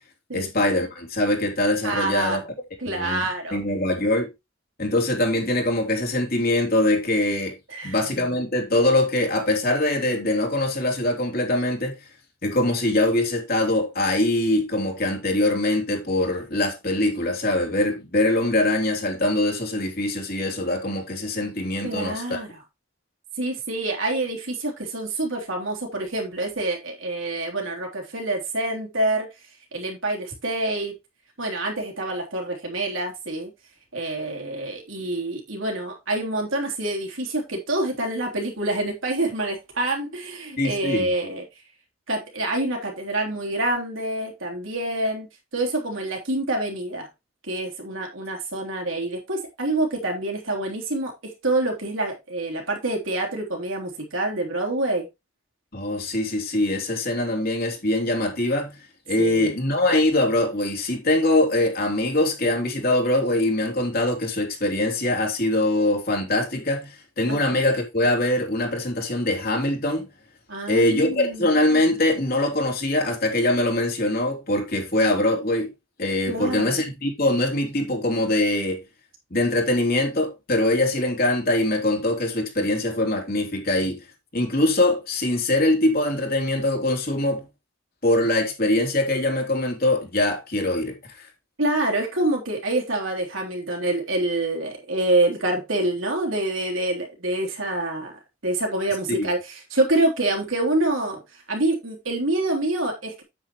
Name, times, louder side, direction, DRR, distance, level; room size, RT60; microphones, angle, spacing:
voice 1, 0.3-2.4 2.8-3.2 3.5-4.3 4.8-7.5 7.8-12.0 12.4-22.4 40.6-41.1 55.7-58.8 59.1-70.1 70.7-75.7 76.0-78.8 79.3-84.0 84.3-87.4 88.0-91.2 99.1-99.3, left 1 dB, 45° left, 3.2 m, -23 dB
voice 2, 1.8-2.4 2.8-3.6 7.7-8.4 21.8-22.6 23.4-29.3 29.7-30.9 31.4-33.5 33.9-41.4 42.1-45.3 45.5-47.1 47.4-55.1 59.2-59.5 67.3-67.6 70.5-71.5 76.3-76.8 91.6-98.1 98.4-101.2 101.5-103.2, right 2 dB, 80° right, 3.4 m, -26 dB
8.9 x 8.8 x 3.1 m
head